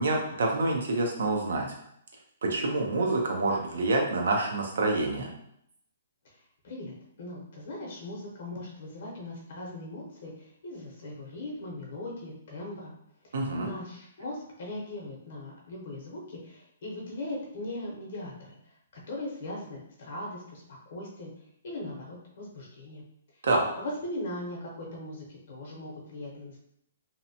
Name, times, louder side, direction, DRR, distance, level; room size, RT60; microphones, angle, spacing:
voice 1, 0.0-1.7 2.4-5.3 13.3-13.7 23.4-23.6, right 2 dB, 70° right, 1 dB, 0.5 m, -27 dB
voice 2, 6.6-12.9 13.6-18.6 19.1-21.3 21.6-23.0 23.8-26.6, left 1 dB, 55° left, -3 dB, 0.7 m, -39 dB
2.7 x 2.1 x 2.7 m, 0.73 s
hypercardioid pair, 165°, 0 cm